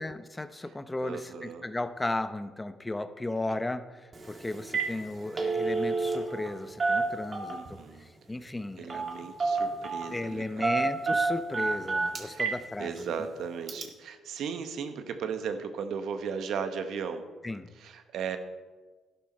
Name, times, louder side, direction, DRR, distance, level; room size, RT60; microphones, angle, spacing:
voice 1, 0.0-7.6 8.0-9.1 10.1-13.1 17.4-17.7, left 2 dB, 15° left, 11 dB, 0.8 m, -35 dB
voice 2, 1.0-1.7 7.5-8.1 8.8-10.8 11.6-11.9 12.2-12.5 12.8-17.2 17.7-18.4, right 6 dB, 75° right, 8 dB, 1.1 m, -36 dB
Telephone, 4.1-4.3 4.6-4.9 5.2-6.5 6.8-7.7 8.9-9.1 9.4-10.1 10.6-12.6 13.0-13.1 13.7-13.8, right 4 dB, 35° right, 1.9 m, -28 dB
11.5 x 11.5 x 4.4 m, 1.3 s
cardioid pair, 90°, 0 cm